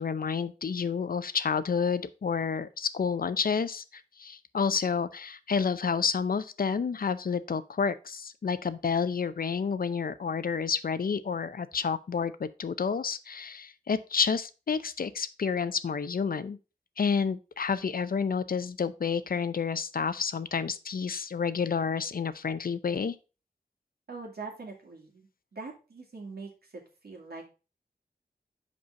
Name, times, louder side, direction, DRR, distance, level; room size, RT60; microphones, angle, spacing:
voice 1, 0.0-3.8 4.2-16.6 17.0-23.1, left 6 dB, 65° left, 14 dB, 0.6 m, -29 dB
voice 2, 24.1-25.3 25.5-27.5, right 4 dB, 85° right, 0 dB, 2.2 m, -43 dB
5.5 x 5.3 x 5.3 m, 0.32 s
wide cardioid pair, 95°, 16 cm